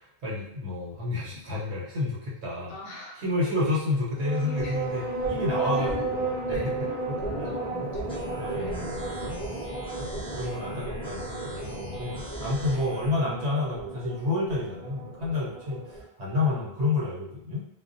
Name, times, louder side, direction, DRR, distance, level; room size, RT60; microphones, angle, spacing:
voice 1, 0.0-2.7 3.2-6.9 7.4-7.6 8.4-9.4 10.0-17.7, left 2 dB, 85° right, -6 dB, 1.1 m, -30 dB
voice 2, 2.7-3.3 4.5-4.8 5.6-7.0 7.3-10.1, left 3 dB, 65° left, -1 dB, 0.7 m, -43 dB
sound 1, 4.1-16.0, right 2 dB, 50° right, 0.6 m, -33 dB
sound 2, 8.1-13.1, equal, 5° left, 0.4 m, -41 dB
2.3 x 2.1 x 2.5 m, 0.73 s
omnidirectional pair, 1.1 m